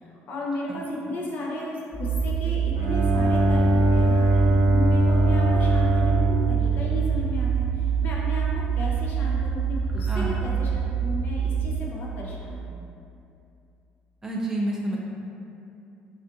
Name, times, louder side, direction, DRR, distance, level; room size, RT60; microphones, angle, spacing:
voice 1, 0.0-12.7, left 1 dB, 50° left, -4 dB, 0.5 m, -34 dB
sound 1, 1.9-11.8, right 7 dB, 20° left, 1.0 m, -26 dB
Bowed string instrument, 2.7-7.6, right 1 dB, 90° right, 0.4 m, -22 dB
voice 2, 9.9-10.3 14.2-15.0, right 1 dB, 15° right, -3 dB, 0.4 m, -29 dB
2.5 x 2.4 x 2.4 m, 2.7 s
cardioid pair, 105°, 4 cm